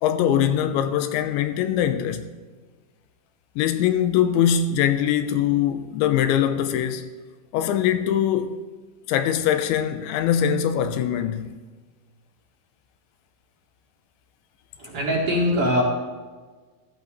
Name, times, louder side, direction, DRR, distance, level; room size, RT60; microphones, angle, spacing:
voice 1, 0.0-2.3 3.6-7.1 7.5-8.6 9.1-11.6, left 9 dB, 85° left, 3.0 m, -22 dB
voice 2, 14.8-15.8, left 1 dB, 45° right, 2.1 m, -22 dB
16.5 x 13.5 x 3.2 m
omnidirectional pair, 5.4 m